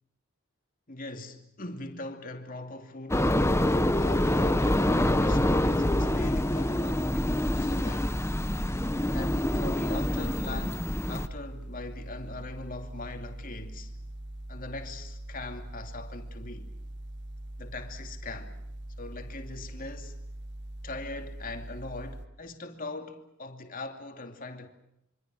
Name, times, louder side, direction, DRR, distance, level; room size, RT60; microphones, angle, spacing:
voice 1, 0.9-3.6 3.9-8.2 9.1-13.9 14.5-16.7 17.6-18.6 19.0-20.2 20.8-24.7, left 2 dB, 40° left, 2.6 m, -41 dB
sound 1, 3.1-11.3, left 1 dB, 10° left, 0.9 m, -26 dB
sound 2, 3.3-22.3, right 1 dB, 50° right, 1.4 m, -42 dB
26.5 x 25.0 x 6.4 m
head